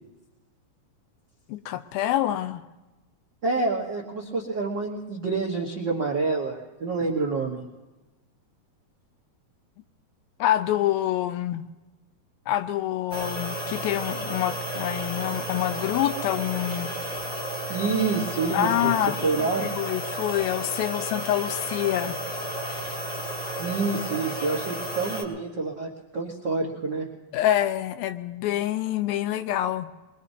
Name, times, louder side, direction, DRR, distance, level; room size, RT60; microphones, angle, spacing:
voice 1, 1.5-2.6 10.4-11.7 12.5-16.9 18.5-19.2 19.6-22.2 27.3-29.9, left 12 dB, 85° left, 10 dB, 2.5 m, -26 dB
voice 2, 3.4-7.6 17.7-18.9 19.2-19.7 23.6-27.1, right 4 dB, 80° right, -3 dB, 1.0 m, -27 dB
sound 1, 13.1-25.2, right 1 dB, 20° left, 1.9 m, -32 dB
22.5 x 22.0 x 2.7 m, 1.1 s
omnidirectional pair, 4.2 m